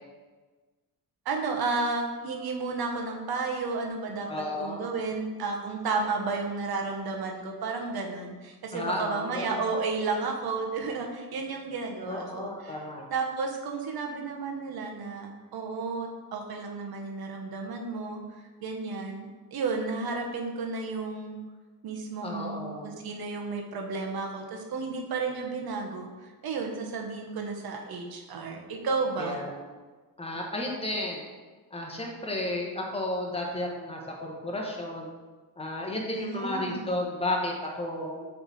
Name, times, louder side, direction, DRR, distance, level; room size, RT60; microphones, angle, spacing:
voice 1, 1.2-4.3 4.6-12.8 13.1-18.2 18.6-21.4 21.8-26.1 26.4-29.4 36.1-36.8, right 4 dB, 90° right, 2 dB, 1.0 m, -32 dB
voice 2, 4.3-4.9 8.7-9.6 12.0-13.1 22.2-23.0 29.2-29.7 30.2-31.2 31.7-35.1 35.6-38.3, left 1 dB, 15° left, -1 dB, 1.1 m, -33 dB
6.8 x 3.5 x 4.1 m, 1.3 s
wide cardioid pair, 135°, 36 cm